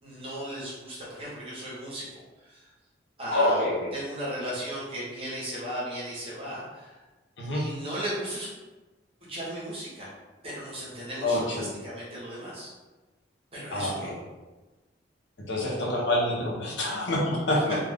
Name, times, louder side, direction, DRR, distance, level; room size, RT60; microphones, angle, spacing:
voice 1, 0.0-2.1 2.4-2.7 3.2-7.0 7.5-8.5 9.3-10.1 10.4-12.7 13.5-14.2 17.5-17.6, right 1 dB, 30° right, -7 dB, 1.0 m, -36 dB
voice 2, 3.3-3.9 7.4-7.6 11.2-11.6 13.7-14.1 15.5-17.8, left 1 dB, 70° left, -3 dB, 0.8 m, -26 dB
2.4 x 2.4 x 3.4 m, 1.2 s
head